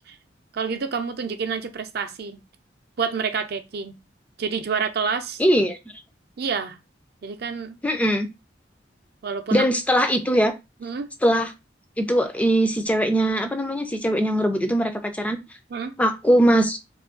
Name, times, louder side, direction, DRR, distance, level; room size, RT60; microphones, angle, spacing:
voice 1, 0.5-2.4 3.0-4.0 4.4-5.4 6.4-6.8 7.2-7.8 9.2-9.7 10.8-11.1 15.7-16.0, right 5 dB, 60° right, 0.5 m, -28 dB
voice 2, 5.4-5.8 7.8-8.3 9.5-10.5 11.2-11.5 12.0-15.4 16.0-16.8, equal, 10° left, 0.3 m, -21 dB
2.5 x 2.4 x 3.6 m
head